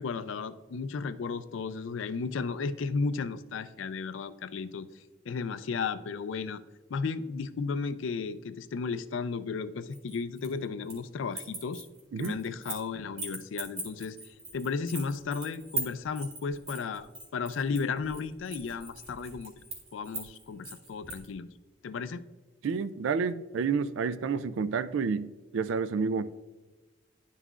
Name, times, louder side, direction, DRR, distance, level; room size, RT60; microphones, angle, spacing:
voice 1, 0.0-4.9 5.3-6.6 6.9-11.9 12.2-14.2 14.5-19.5 19.9-21.5 21.8-22.2, left 5 dB, 70° left, 13 dB, 0.4 m, -34 dB
sound 1, 9.9-11.1 11.3-12.9 13.2-21.3, right 4 dB, 35° right, 2.1 m, -40 dB
voice 2, 22.6-25.3 25.5-26.3, right 5 dB, 70° right, 14 dB, 0.3 m, -29 dB
11.0 x 5.6 x 2.4 m, 1.2 s
head